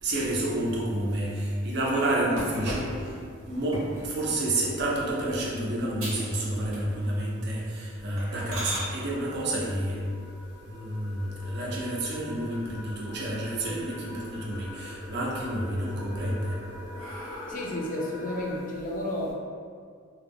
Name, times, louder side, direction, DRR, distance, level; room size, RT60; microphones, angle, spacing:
voice 1, 0.0-3.1 3.5-10.1 10.6-16.6, right 1 dB, 55° right, -4 dB, 0.5 m, -29 dB
sound 1, 2.4-4.1 4.7-5.0 5.4-5.5 6.0-6.3 6.6-7.2 7.5-7.7 8.2-8.9 10.9-11.5 12.0-12.1 12.5-12.6 12.9-13.7 14.0-14.6 15.0-15.7 16.2-17.9, equal, 85° right, 0.8 m, -38 dB
sound 2, 7.2-18.6, left 2 dB, 15° right, 0.6 m, -44 dB
voice 2, 17.5-19.3, left 1 dB, 40° left, -2 dB, 0.4 m, -32 dB
2.2 x 2.1 x 3.4 m, 2.1 s
head